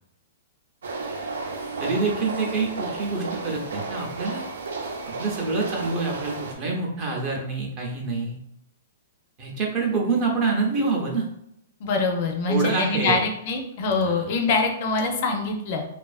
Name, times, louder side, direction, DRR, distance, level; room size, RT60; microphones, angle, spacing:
sound 1, 0.8-6.5, right 3 dB, 80° right, 0.5 m, -33 dB
voice 1, 1.8-4.4 5.2-8.4 9.4-11.3 12.5-13.2 13.9-14.3, right 3 dB, 30° right, -1 dB, 0.6 m, -26 dB
voice 2, 11.8-15.8, left 3 dB, 45° left, 3 dB, 0.4 m, -24 dB
2.5 x 2.3 x 2.3 m, 0.77 s
hypercardioid pair, 160°, 0 cm